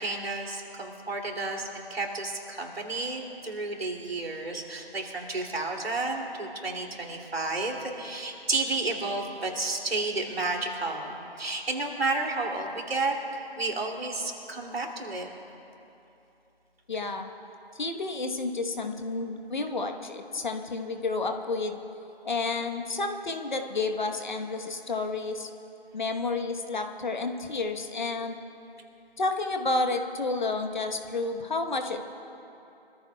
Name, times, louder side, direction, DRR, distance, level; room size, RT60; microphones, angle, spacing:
voice 1, 0.0-15.3, right 3 dB, 75° right, 1 dB, 2.8 m, -31 dB
voice 2, 16.9-17.3 17.7-21.8 22.2-25.5 25.9-28.4 29.2-32.1, left 3 dB, 50° left, 5 dB, 1.2 m, -30 dB
25.5 x 14.5 x 2.3 m, 2.9 s
figure-of-eight pair, 165°, 31 cm